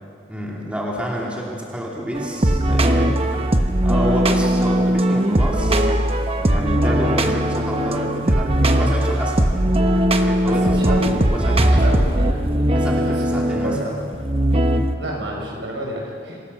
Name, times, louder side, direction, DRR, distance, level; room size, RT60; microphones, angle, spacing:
voice 1, 0.3-3.2 3.8-5.9 6.5-9.5 10.2-11.8 12.7-13.8, equal, 5° right, -3 dB, 2.9 m, -29 dB
sound 1, 2.1-14.9, right 1 dB, 30° right, 1.1 m, -19 dB
voice 2, 10.4-11.1 11.7-13.9 15.0-16.4, right 1 dB, 80° right, -2 dB, 6.8 m, -30 dB
27.0 x 16.0 x 7.0 m, 2.3 s
head